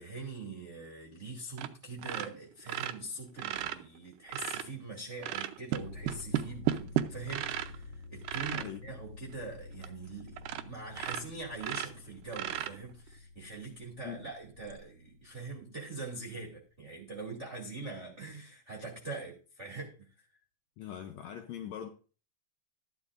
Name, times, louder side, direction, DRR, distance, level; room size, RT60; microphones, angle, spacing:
voice 1, 0.0-20.3, right 3 dB, 25° right, 2.1 m, -43 dB
sound 1, 1.6-1.7 2.0-4.7 5.2-7.8 8.2-8.7 9.3-9.4 9.8-9.9 10.4-10.7 10.9-13.1 14.6-14.7, right 12 dB, 80° right, 2.3 m, -34 dB
sound 2, 5.7-16.5, left 3 dB, 35° left, 1.3 m, -50 dB
voice 2, 8.5-8.8 14.0-14.2 20.8-21.9, left 9 dB, 75° left, 1.7 m, -42 dB
13.5 x 12.0 x 2.5 m
omnidirectional pair, 3.9 m